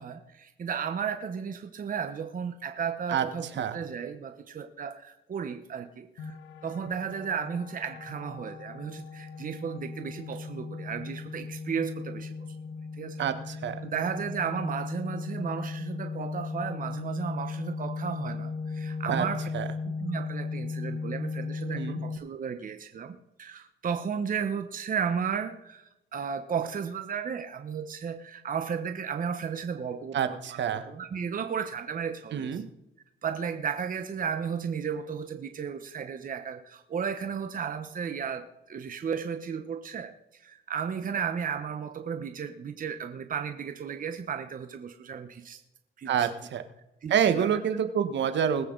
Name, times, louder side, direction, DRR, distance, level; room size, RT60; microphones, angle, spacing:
voice 1, 0.0-6.4 6.6-12.3 13.0-19.5 19.8-30.6 30.9-32.6 33.2-45.6 46.0-46.3 47.0-47.6, right 7 dB, 45° right, 7 dB, 1.1 m, -34 dB
sound 1, 6.2-22.2, left 4 dB, 85° left, 1.1 m, -37 dB
voice 2, 13.2-13.7 19.1-19.2 19.5-19.7 21.7-22.0 30.1-30.8 32.3-32.7 46.1-46.6 47.1-48.7, right 8 dB, 65° right, 9 dB, 1.4 m, -27 dB
20.5 x 8.4 x 4.0 m, 0.88 s
cardioid pair, 90°, 20 cm